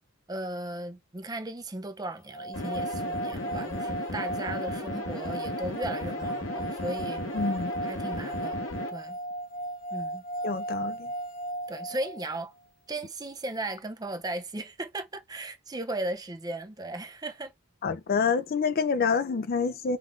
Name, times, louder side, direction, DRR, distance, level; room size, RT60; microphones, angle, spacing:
voice 1, 0.3-7.2 7.8-8.6 8.9-9.2 9.9-10.2 11.7-12.5 12.9-17.5, right 2 dB, 20° right, 0.5 m, -36 dB
sound 1, 2.3-12.4, right 1 dB, 25° left, 0.8 m, -36 dB
sound 2, 2.5-8.9, left 1 dB, 65° left, 1.4 m, -35 dB
voice 2, 7.3-7.7 10.4-11.1 17.8-20.0, left 5 dB, 45° left, 0.4 m, -27 dB
3.5 x 2.5 x 3.1 m
head